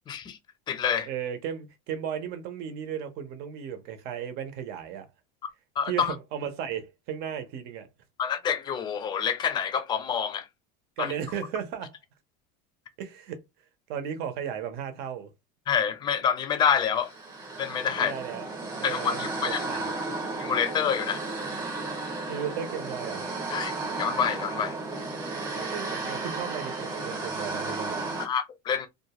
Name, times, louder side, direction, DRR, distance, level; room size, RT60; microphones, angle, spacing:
voice 1, 0.1-0.4 0.7-1.1 5.8-6.1 8.2-10.5 11.0-11.1 15.7-17.1 17.6-18.1 18.8-19.6 20.4-21.2 23.5-24.8 28.2-28.9, left 7 dB, 20° left, 0.4 m, -27 dB
voice 2, 1.1-5.1 5.9-7.9 11.0-11.9 13.0-13.4 13.9-15.3 18.0-18.5 18.8-19.9 22.3-23.2 25.5-28.0, right 8 dB, 50° right, 0.7 m, -35 dB
sound 1, 17.0-28.3, right 3 dB, 20° right, 0.9 m, -34 dB
2.5 x 2.3 x 2.9 m
cardioid pair, 155°, 21 cm